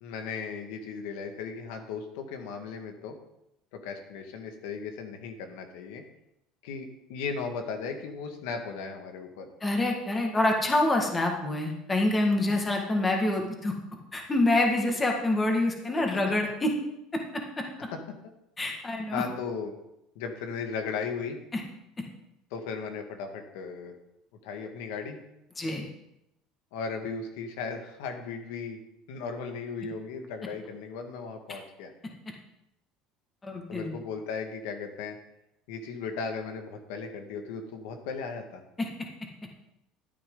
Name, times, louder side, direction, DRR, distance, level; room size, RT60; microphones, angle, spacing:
voice 1, 0.0-3.2 3.7-6.0 6.6-9.5 19.1-19.7 20.2-21.4 22.5-23.9 24.4-25.2 26.7-28.8 29.1-31.9 33.7-35.2 35.7-38.6, left 5 dB, 85° left, 4 dB, 1.8 m, -36 dB
voice 2, 9.6-13.7 14.1-16.7 17.3-17.4 18.6-19.2 21.5-21.6 25.6-25.9 33.4-34.0 38.8-39.1, left 2 dB, 15° left, 2 dB, 1.8 m, -26 dB
13.0 x 8.9 x 3.9 m, 0.83 s
cardioid pair, 135°, 0 cm